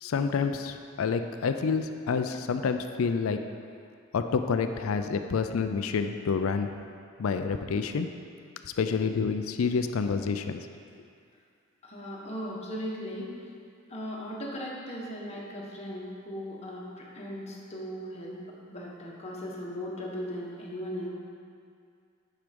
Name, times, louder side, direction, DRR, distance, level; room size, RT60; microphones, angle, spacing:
voice 1, 0.0-3.4 4.1-6.7 7.2-8.1 8.8-10.6, left 5 dB, 75° left, 8 dB, 0.4 m, -28 dB
voice 2, 11.8-13.3 13.9-18.4 18.7-21.1, equal, 30° left, -4 dB, 1.4 m, -37 dB
9.1 x 4.9 x 5.2 m, 2.3 s
head